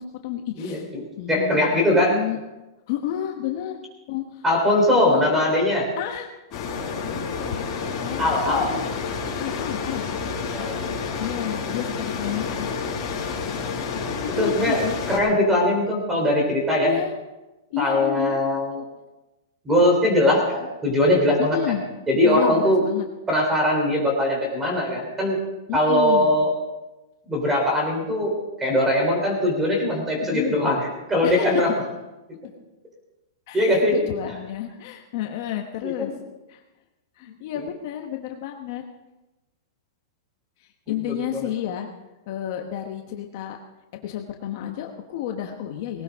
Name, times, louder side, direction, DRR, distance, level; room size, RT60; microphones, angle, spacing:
voice 1, 0.0-0.9 1.2-2.4 2.9-3.8 4.1-4.4 5.0-5.3 5.6-5.7 6.0-6.3 6.9-8.9 9.4-10.7 11.2-12.7 14.2-14.9 16.7-17.1 17.7-18.4 21.4-21.9 22.1-23.1 25.7-26.3 30.3-30.5 31.2-31.5 33.5-36.2 36.5-36.6 37.2-38.8 40.6-41.9 42.3-43.6 44.0-46.0, left 11 dB, 40° left, 3 dB, 1.1 m, -31 dB
voice 2, 0.6-2.2 4.4-5.9 8.2-8.7 10.5-10.9 14.4-17.0 17.8-18.8 19.6-21.7 22.1-22.8 23.3-25.4 25.7-26.5 27.2-31.7 33.5-34.0 36.0-36.2 37.2-37.6 41.1-41.5, left 1 dB, 10° right, 1 dB, 3.5 m, -21 dB
sound 1, 6.5-15.2, left 5 dB, 25° left, 5.0 m, -29 dB
19.0 x 18.0 x 3.6 m, 1.1 s
supercardioid pair, 175°, 2 cm